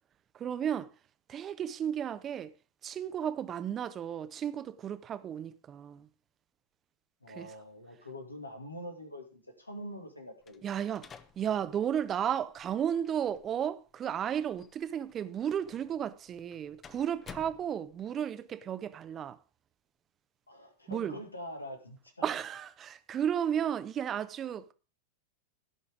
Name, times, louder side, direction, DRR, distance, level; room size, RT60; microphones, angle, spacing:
voice 1, 0.3-0.9 1.3-2.5 2.8-6.1 7.4-7.5 10.6-11.1 11.4-19.4 20.9-21.2 22.2-24.7, right 9 dB, 25° right, 0.8 m, -33 dB
voice 2, 7.2-10.9 20.5-22.2, equal, 85° left, 2.4 m, -45 dB
sound 1, 10.4-18.2, left 6 dB, 25° left, 0.9 m, -55 dB
16.5 x 5.6 x 4.9 m
figure-of-eight pair, 90°, 0 cm